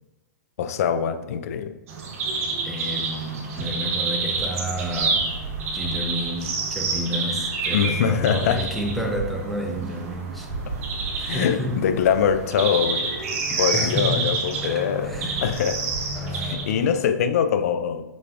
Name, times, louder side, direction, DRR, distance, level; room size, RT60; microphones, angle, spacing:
voice 1, 0.6-1.7 7.7-8.7 11.2-13.1 13.5-15.1 15.4-15.9 16.3-18.0, left 8 dB, 60° left, 10 dB, 0.4 m, -23 dB
sound 1, 1.9-17.0, right 4 dB, 55° right, 0.9 m, -28 dB
voice 2, 2.6-5.3 5.7-10.5 11.1-11.8 13.7-15.4 16.1-16.7, equal, ahead, 0 dB, 0.5 m, -30 dB
5.1 x 3.3 x 2.4 m, 1.0 s
hypercardioid pair, 125°, 9 cm